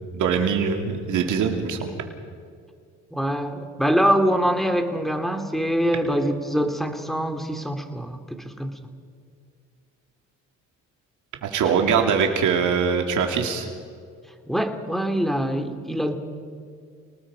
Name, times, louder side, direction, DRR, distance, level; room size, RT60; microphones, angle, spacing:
voice 1, 0.1-1.9 11.4-13.7, right 6 dB, 80° right, 3 dB, 2.7 m, -22 dB
voice 2, 3.1-8.7 14.5-16.2, equal, ahead, 5 dB, 2.6 m, -24 dB
29.0 x 19.5 x 5.1 m, 2.2 s
cardioid pair, 90°, 30 cm